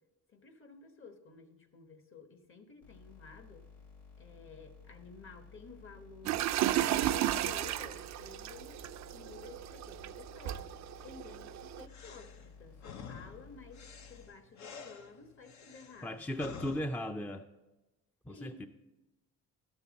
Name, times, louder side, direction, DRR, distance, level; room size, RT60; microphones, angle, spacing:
voice 1, 0.3-3.6 4.2-10.7 11.0-16.2 18.3-18.7, left 4 dB, 45° left, 7 dB, 1.3 m, -53 dB
sound 1, 2.8-14.3, left 5 dB, 90° left, 3.4 m, -55 dB
sound 2, 6.2-11.8, right 13 dB, 65° right, 0.4 m, -34 dB
sound 3, 11.9-16.8, left 6 dB, 70° left, 0.8 m, -49 dB
voice 2, 16.0-17.5 18.3-18.7, left 1 dB, 5° left, 7 dB, 0.4 m, -37 dB
12.0 x 7.2 x 4.0 m, 1.1 s
cardioid pair, 90°, 30 cm